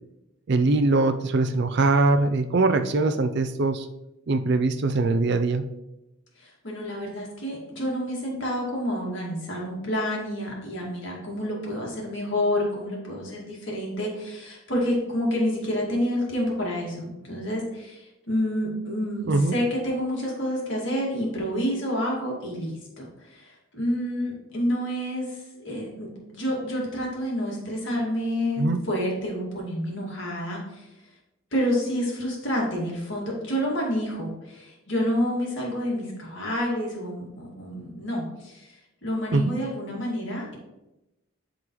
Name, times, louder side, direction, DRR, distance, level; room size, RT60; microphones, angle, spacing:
voice 1, 0.5-3.9 4.3-5.6 19.3-19.6 28.6-28.8 39.3-39.5, right 3 dB, 50° right, 8 dB, 0.4 m, -22 dB
voice 2, 6.4-30.9 31.5-38.7 39.0-40.6, equal, 55° left, -3 dB, 2.1 m, -29 dB
10.5 x 3.8 x 3.1 m, 0.95 s
head